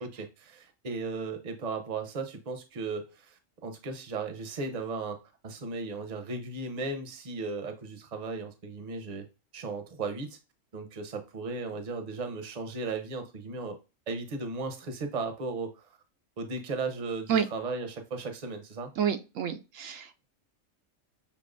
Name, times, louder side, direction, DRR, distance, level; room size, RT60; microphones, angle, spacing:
voice 1, 0.0-9.3 9.5-10.4 10.7-13.8 14.1-15.9 16.4-18.9, right 3 dB, 35° right, 0.8 m, -36 dB
voice 2, 19.0-20.3, right 8 dB, 85° right, 1.1 m, -29 dB
6.7 x 2.8 x 2.5 m
omnidirectional pair, 1.3 m